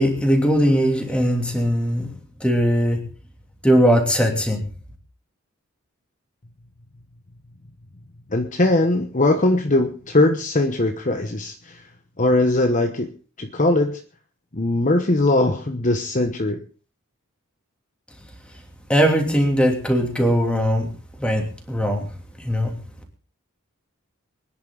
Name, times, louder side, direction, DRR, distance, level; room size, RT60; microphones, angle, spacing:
voice 1, 0.0-2.1 2.4-3.0 3.6-4.6 18.9-20.9 21.2-22.1 22.4-22.7, equal, 5° left, 2 dB, 3.0 m, -19 dB
voice 2, 8.3-11.9 12.2-13.1 13.4-14.0 14.5-16.6, left 2 dB, 35° left, 5 dB, 1.1 m, -20 dB
24.0 x 10.5 x 4.0 m, 0.37 s
head